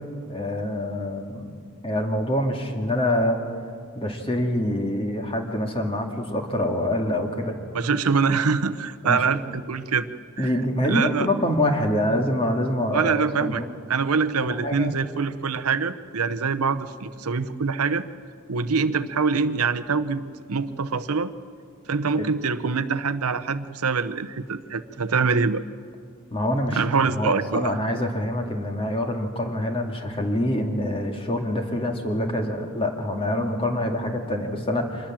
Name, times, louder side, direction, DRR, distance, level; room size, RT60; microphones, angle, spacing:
voice 1, 0.3-1.5 1.8-3.4 3.9-7.6 9.0-9.4 10.4-13.7 14.4-14.9 22.2-22.3 26.3-26.8 27.1-35.1, left 1 dB, 25° left, 3 dB, 2.3 m, -25 dB
voice 2, 7.7-10.1 10.4-10.5 10.9-11.3 12.9-13.6 13.9-18.0 18.5-20.2 20.5-21.3 21.9-25.6 26.7-27.7, right 5 dB, 85° right, 11 dB, 0.8 m, -24 dB
25.5 x 20.5 x 7.6 m, 2.2 s
head